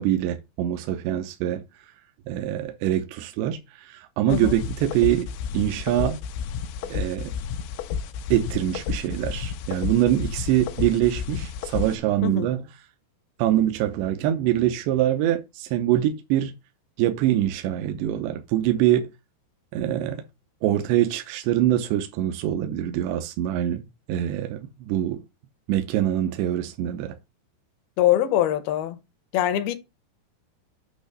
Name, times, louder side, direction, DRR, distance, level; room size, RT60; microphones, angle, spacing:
voice 1, 0.0-1.6 2.3-5.3 5.5-6.2 6.9-7.3 8.3-12.6 13.4-16.5 17.0-19.1 19.7-20.2 20.6-23.8 24.1-25.2 25.7-27.2, right 12 dB, 80° right, 2.9 m, -24 dB
sound 1, 4.3-12.0, left 7 dB, 90° left, 3.0 m, -31 dB
voice 2, 28.0-29.0 29.3-29.7, left 12 dB, 75° left, 2.5 m, -23 dB
8.6 x 3.1 x 6.5 m
omnidirectional pair, 5.0 m